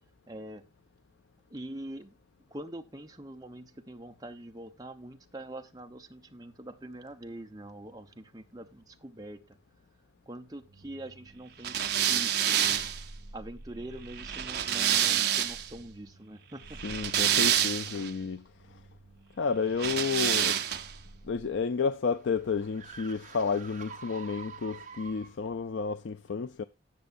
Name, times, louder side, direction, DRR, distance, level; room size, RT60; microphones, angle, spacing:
voice 1, 0.3-0.6 1.5-2.1 2.5-9.6 10.3-12.9 13.3-16.8, right 1 dB, 20° right, 0.9 m, -44 dB
sound 1, 11.6-15.7 16.7-18.1 19.7-21.0, right 10 dB, 55° right, 0.7 m, -28 dB
voice 2, 16.8-18.8 19.4-20.6 21.2-26.6, left 5 dB, 70° left, 0.4 m, -31 dB
sound 2, 21.3-25.6, right 6 dB, 40° right, 1.4 m, -48 dB
17.5 x 6.8 x 2.5 m
head